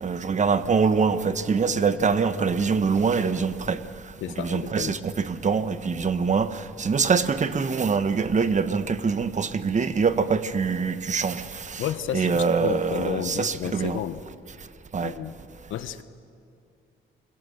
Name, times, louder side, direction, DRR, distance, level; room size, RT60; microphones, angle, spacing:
voice 1, 0.0-3.8 4.4-11.8 12.1-14.0 14.9-15.1, right 5 dB, 35° right, 1.2 m, -24 dB
voice 2, 4.2-5.0 11.8-14.2 15.0-15.3 15.7-16.0, left 11 dB, 80° left, 1.1 m, -31 dB
29.5 x 21.5 x 6.6 m
cardioid pair, 90°, 20 cm